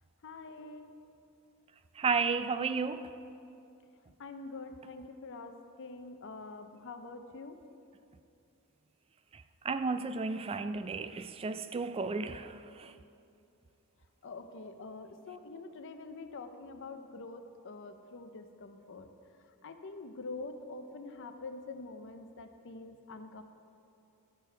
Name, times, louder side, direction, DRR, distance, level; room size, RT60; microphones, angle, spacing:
voice 1, 0.2-0.9 4.2-7.6 14.2-19.1 19.6-23.4, left 3 dB, 55° left, 8 dB, 0.6 m, -45 dB
voice 2, 2.0-3.1 9.3-12.9, right 4 dB, 25° right, 10 dB, 0.3 m, -33 dB
12.5 x 6.9 x 4.5 m, 2.6 s
head